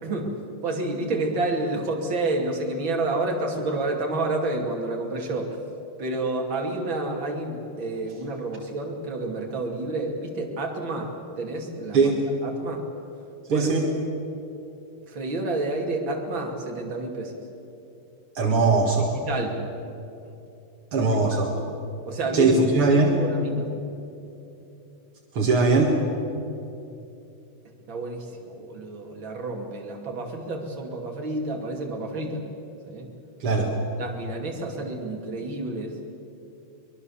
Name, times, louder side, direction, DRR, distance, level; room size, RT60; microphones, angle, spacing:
voice 1, 0.0-0.4 0.6-5.6 6.0-12.1 12.4-12.8 13.5-13.7 15.1-17.4 18.5-18.6 19.2-19.6 21.0-21.4 22.1-22.5 22.8-23.7 27.6-32.4 32.9-33.1 34.0-36.0, right 2 dB, 60° right, 1 dB, 3.4 m, -29 dB
voice 2, 13.5-13.9 18.4-19.1 20.9-21.5 22.3-23.2 25.3-25.9 33.4-33.7, right 3 dB, 80° right, 0 dB, 2.8 m, -20 dB
23.5 x 22.5 x 7.2 m, 2.8 s
omnidirectional pair, 2.4 m